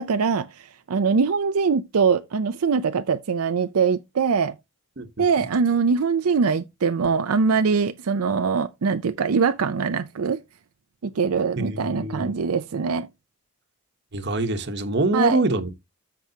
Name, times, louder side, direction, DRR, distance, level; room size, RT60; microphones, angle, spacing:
voice 1, 0.0-4.6 5.2-10.4 11.0-13.1 15.1-15.4, right 5 dB, 80° right, 0.5 m, -22 dB
voice 2, 5.0-5.5 11.6-12.3 14.1-15.7, right 2 dB, 50° right, 1.0 m, -25 dB
13.5 x 4.7 x 2.8 m
head